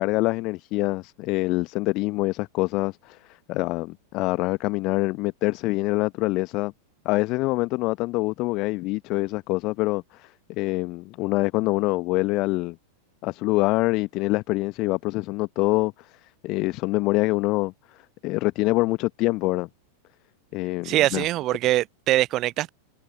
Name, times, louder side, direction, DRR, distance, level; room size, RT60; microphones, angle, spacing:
voice 1, 0.0-6.7 7.0-12.8 13.2-17.7 18.2-19.7 20.5-21.2, left 22 dB, 40° left, 0.9 m, -25 dB
voice 2, 20.8-22.7, right 15 dB, 35° right, 0.3 m, -23 dB
figure-of-eight pair, 90°, 0 cm